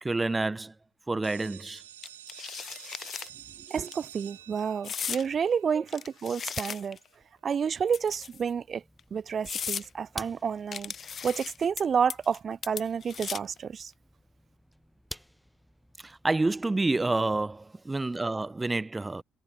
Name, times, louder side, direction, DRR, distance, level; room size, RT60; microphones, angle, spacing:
voice 1, 0.0-0.7 1.1-1.8 5.7-5.8 16.0-19.2, right 2 dB, 20° right, 1.1 m, -28 dB
sound 1, 1.2-6.9, right 12 dB, 85° right, 1.1 m, -50 dB
sound 2, 2.0-3.3 3.7-3.9 4.8-5.3 5.9-7.1 7.9-8.5 9.0-9.1 9.4-9.9 10.7-11.8 12.1-12.4 12.6-13.6, left 7 dB, 45° left, 2.5 m, -36 dB
voice 2, 3.7-7.0 7.4-8.8 9.1-10.9 11.2-13.9, right 7 dB, 45° right, 0.5 m, -29 dB
sound 3, 7.1-17.6, equal, ahead, 1.9 m, -51 dB
figure-of-eight pair, 50°, 0 cm